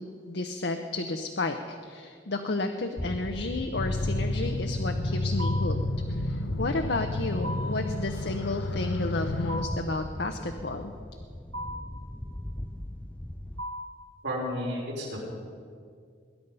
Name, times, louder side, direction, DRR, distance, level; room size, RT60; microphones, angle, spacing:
voice 1, 0.0-5.8 6.1-10.9, left 2 dB, 60° left, 5 dB, 0.8 m, -32 dB
sound 1, 3.0-13.6, left 1 dB, 5° left, 0.4 m, -38 dB
sound 2, 3.7-9.6, left 2 dB, 90° left, 0.8 m, -31 dB
sound 3, 5.4-5.9 7.4-7.9 9.5-10.0 11.5-12.0 13.6-14.1, equal, 90° right, 1.7 m, -37 dB
voice 2, 14.2-15.2, equal, 70° right, -3 dB, 4.7 m, -32 dB
20.5 x 10.5 x 5.5 m, 2.1 s
head